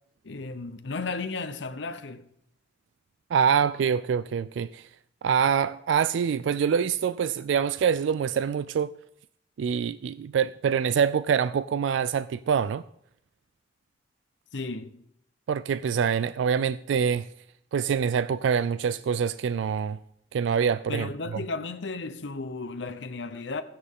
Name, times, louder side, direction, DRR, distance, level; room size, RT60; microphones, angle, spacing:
voice 1, 0.2-2.3 14.5-15.0 20.9-23.6, left 3 dB, 75° left, 0.7 m, -34 dB
voice 2, 3.3-4.9 5.2-8.9 9.6-12.8 15.5-17.3 17.7-20.0 20.3-21.1, right 7 dB, 80° right, 0.3 m, -25 dB
15.0 x 10.0 x 3.6 m
head